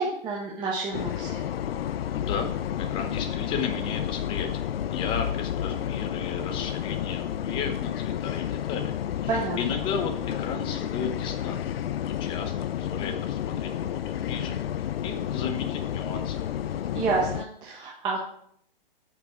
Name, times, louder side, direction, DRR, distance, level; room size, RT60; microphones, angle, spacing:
voice 1, 0.0-1.4 9.3-9.8 16.9-18.3, right 4 dB, 15° right, -4 dB, 1.2 m, -29 dB
sound 1, 0.9-17.4, left 10 dB, 85° left, 0.5 m, -31 dB
voice 2, 2.1-2.5 2.8-4.6 4.9-8.9 9.2-11.7 12.0-14.6 15.0-16.5, left 6 dB, 15° left, 7 dB, 0.8 m, -34 dB
8.8 x 5.9 x 4.9 m, 0.68 s
hypercardioid pair, 155°, 29 cm